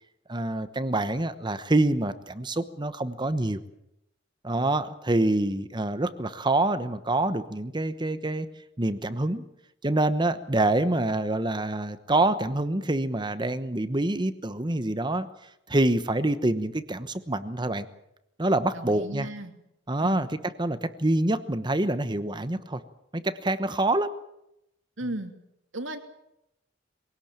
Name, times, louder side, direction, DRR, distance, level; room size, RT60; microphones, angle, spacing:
voice 1, 0.3-3.6 4.4-8.5 8.8-9.4 9.8-15.3 15.7-17.9 18.4-19.3 19.9-20.3 20.6-22.8 23.1-24.1, right 2 dB, 25° right, 12 dB, 1.0 m, -26 dB
voice 2, 18.7-19.5 20.0-20.4 25.0-25.3 25.7-26.0, right 1 dB, 75° right, 6 dB, 2.9 m, -35 dB
23.0 x 17.5 x 8.9 m, 0.83 s
head